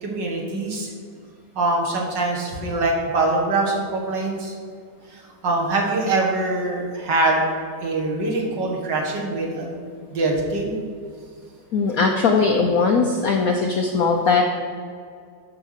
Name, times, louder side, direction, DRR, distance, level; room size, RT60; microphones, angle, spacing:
voice 1, 0.0-0.9 1.6-4.6 5.1-7.4 7.8-9.8 10.1-10.8, right 2 dB, 60° right, 0 dB, 2.0 m, -23 dB
voice 2, 11.7-14.4, left 4 dB, 70° left, 2 dB, 0.8 m, -19 dB
8.9 x 5.8 x 6.5 m, 2.2 s
omnidirectional pair, 2.3 m